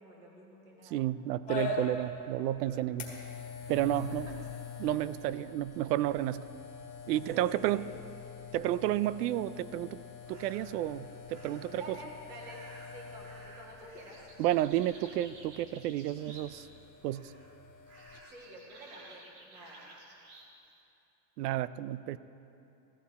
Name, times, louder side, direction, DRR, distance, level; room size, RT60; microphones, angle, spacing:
voice 1, 0.0-1.0 3.9-4.5 5.2-5.3 7.1-7.9 11.7-14.3 18.2-19.9, right 1 dB, 10° right, -1 dB, 0.3 m, -50 dB
voice 2, 0.9-3.1 3.7-4.3 4.8-6.4 7.1-7.8 8.5-10.0 10.3-12.0 14.4-16.7 17.0-17.3 21.4-22.2, right 13 dB, 90° right, 17 dB, 0.6 m, -31 dB
sound 1, 1.5-18.2, left 5 dB, 15° left, 1.5 m, -44 dB
sound 2, 10.2-10.8 11.3-11.9 12.4-16.8 17.0-17.5 17.9-20.5, right 2 dB, 50° right, 2.0 m, -54 dB
15.0 x 14.5 x 4.1 m, 2.8 s
supercardioid pair, 175°, 46 cm